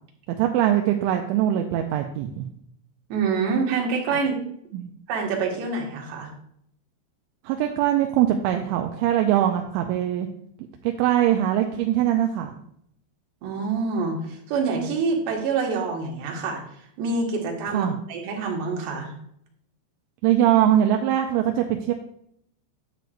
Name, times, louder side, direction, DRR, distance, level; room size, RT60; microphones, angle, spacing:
voice 1, 0.4-2.5 4.1-4.2 4.7-4.9 7.4-10.3 10.8-12.5 17.7-18.0 20.2-21.9, right 11 dB, 85° right, 4 dB, 2.9 m, -22 dB
voice 2, 3.1-4.4 5.1-6.3 13.4-16.6 17.0-19.1, right 4 dB, 65° right, 0 dB, 3.5 m, -26 dB
9.4 x 9.1 x 2.5 m, 0.71 s
omnidirectional pair, 5.6 m